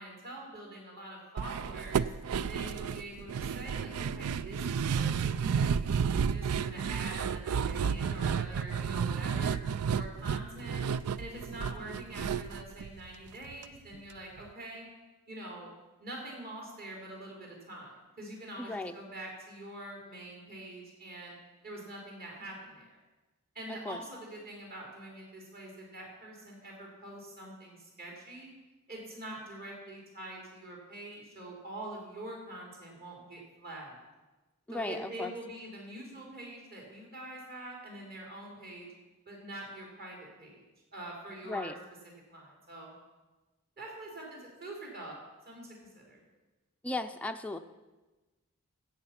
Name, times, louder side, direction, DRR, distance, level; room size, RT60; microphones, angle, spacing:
voice 1, 0.0-2.1 2.5-9.6 9.9-10.8 11.2-14.9 15.3-15.7 16.0-21.4 21.6-22.9 23.5-28.5 28.9-34.0 34.7-38.9 39.3-40.6 40.9-41.8 42.3-43.0 43.8-45.2 45.5-46.2, right 1 dB, 45° right, -2 dB, 3.7 m, -45 dB
sound 1, 1.4-13.6 13.9-14.0 14.4-14.5, right 6 dB, 75° right, 0.4 m, -32 dB
voice 2, 18.6-18.9 23.7-24.0 34.7-35.3 41.5-41.7 46.8-47.6, left 2 dB, 5° left, 5 dB, 0.5 m, -36 dB
15.0 x 7.9 x 5.8 m, 1.2 s
head